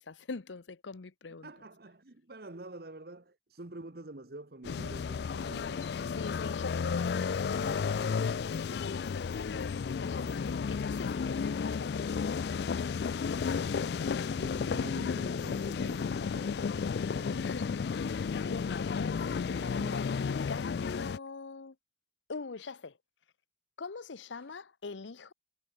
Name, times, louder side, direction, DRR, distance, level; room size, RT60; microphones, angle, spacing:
voice 1, 0.0-1.5 6.1-13.0 13.7-14.0 17.4-21.8 22.3-23.0 23.8-25.3, left 4 dB, 85° left, 0.8 m, -43 dB
voice 2, 1.4-5.8 14.4-17.5 19.1-20.2, right 2 dB, 55° right, 1.3 m, -48 dB
sound 1, 4.6-21.2, left 5 dB, 60° left, 0.3 m, -33 dB
head